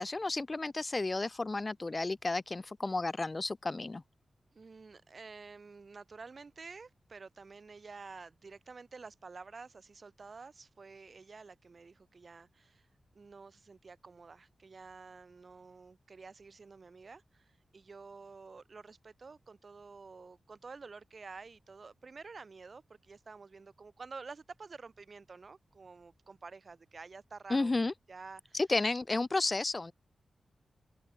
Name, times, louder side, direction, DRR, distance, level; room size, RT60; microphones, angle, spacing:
voice 1, 0.0-4.0 27.5-27.9 28.5-29.9, left 3 dB, 35° left, 0.4 m, -32 dB
voice 2, 4.5-12.9 13.1-27.7 28.1-28.6, right 4 dB, 55° right, 3.6 m, -50 dB
open air
cardioid pair, 60°, 0 cm